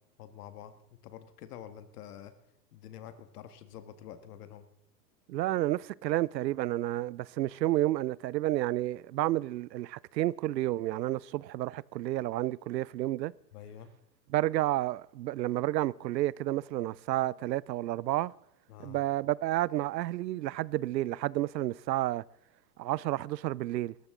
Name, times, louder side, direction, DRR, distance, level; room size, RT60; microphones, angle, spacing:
voice 1, 0.2-0.7 1.0-2.3 2.7-4.7 13.5-13.9 18.7-19.0, left 10 dB, 65° left, 1.9 m, -47 dB
voice 2, 5.3-13.3 14.3-18.3 18.8-22.2 22.8-23.9, right 15 dB, 85° right, 0.6 m, -30 dB
18.0 x 14.0 x 3.8 m
hypercardioid pair, 135°, 49 cm